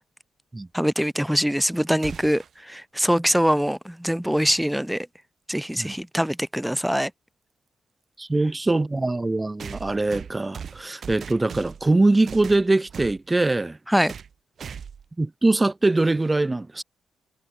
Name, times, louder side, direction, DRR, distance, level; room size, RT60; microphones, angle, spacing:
voice 1, 0.7-5.1 5.5-7.1 13.9-14.1, equal, 5° right, 0.8 m, -23 dB
sound 1, 2.0-2.6 4.7-4.8 5.9-6.0 9.6-11.9 12.3-13.2 14.1-14.3 14.6-15.1, right 7 dB, 55° right, 3.9 m, -38 dB
voice 2, 8.2-13.8 15.2-16.8, right 2 dB, 20° right, 1.8 m, -22 dB
cardioid pair, 75°, 0 cm